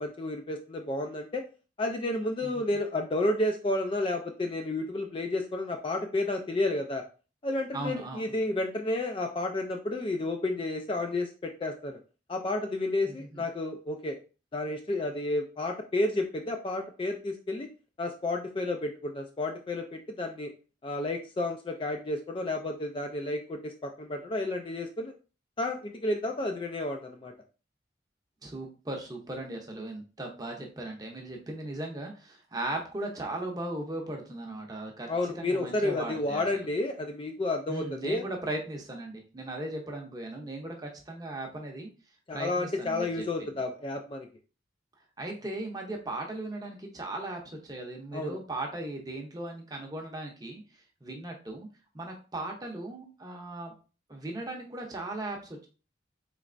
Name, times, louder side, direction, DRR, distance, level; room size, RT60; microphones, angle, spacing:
voice 1, 0.0-1.4 1.8-7.0 7.4-12.0 12.3-14.2 14.5-17.7 18.0-20.5 20.8-25.1 25.6-27.3 35.1-38.2 42.3-44.3 48.1-48.4, left 2 dB, 25° left, 4 dB, 0.3 m, -31 dB
voice 2, 7.7-8.3 13.1-13.4 28.4-36.7 37.7-41.9 42.3-43.6 45.2-50.6 51.0-51.7 51.9-53.7 54.1-55.7, right 2 dB, 20° right, 1 dB, 0.7 m, -38 dB
4.0 x 3.2 x 2.5 m, 0.35 s
head